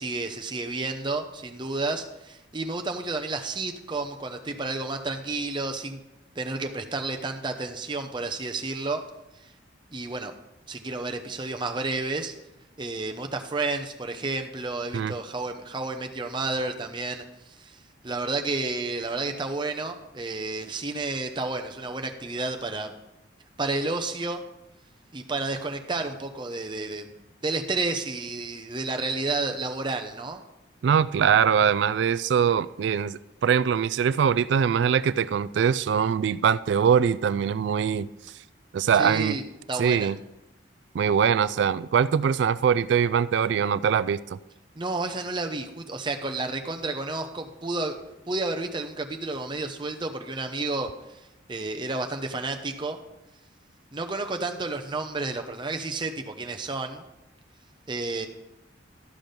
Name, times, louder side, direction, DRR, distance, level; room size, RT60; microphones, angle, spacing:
voice 1, 0.0-6.0 6.4-9.0 9.9-10.3 10.7-12.3 12.8-17.2 17.6-17.8 18.0-22.9 23.6-24.4 25.1-27.1 27.4-30.4 38.9-39.4 39.7-40.1 44.8-48.0 48.3-50.9 51.5-53.0 53.9-57.0 57.9-58.3, right 3 dB, 25° right, 5 dB, 0.8 m, -31 dB
voice 2, 30.8-38.1 38.7-39.4 39.8-40.2 40.9-44.4, right 7 dB, 65° right, 16 dB, 0.3 m, -22 dB
13.0 x 6.0 x 5.2 m, 0.93 s
head